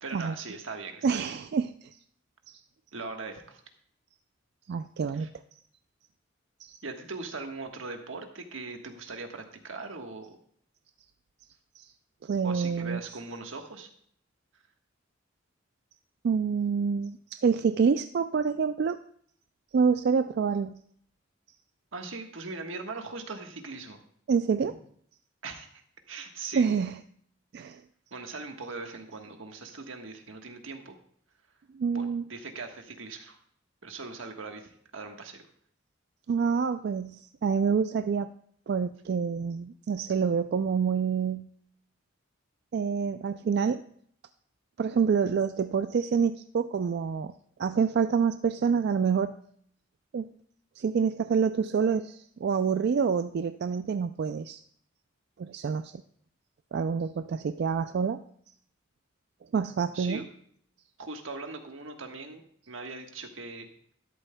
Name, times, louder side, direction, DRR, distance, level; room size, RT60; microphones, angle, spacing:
voice 1, 0.0-1.3 2.9-3.6 5.1-5.3 6.8-10.3 12.4-13.9 21.9-24.0 25.4-25.8 26.1-26.7 28.1-31.0 31.9-33.4 33.8-35.4 59.9-60.2 61.0-63.7, right 3 dB, 85° right, 4 dB, 1.3 m, -40 dB
voice 2, 1.0-1.9 2.5-2.6 4.7-5.3 6.6-6.8 11.8-11.9 12.2-13.0 16.2-19.0 19.7-20.8 24.3-24.7 26.5-27.0 27.5-27.8 31.7-32.2 36.3-38.3 38.7-41.5 42.7-43.8 44.8-47.3 47.6-49.4 50.1-50.3 50.8-54.6 55.4-55.9 56.7-58.2 59.5-60.2, right 6 dB, 55° right, 10 dB, 0.3 m, -27 dB
12.5 x 11.0 x 2.2 m, 0.63 s
head